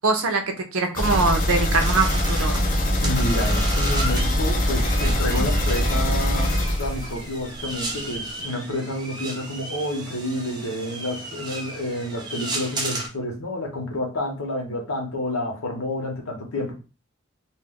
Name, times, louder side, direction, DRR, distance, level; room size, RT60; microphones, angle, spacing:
voice 1, 0.0-0.4 0.7-2.6, right 3 dB, 75° right, 0.6 m, -22 dB
sound 1, 0.9-7.6 7.9-8.0 8.4-8.5, left 1 dB, 40° left, 0.5 m, -22 dB
sound 2, 1.8-13.1, right 2 dB, 20° right, 0.4 m, -34 dB
voice 2, 3.0-16.7, left 1 dB, 85° left, 0.8 m, -29 dB
2.3 x 2.1 x 3.5 m
head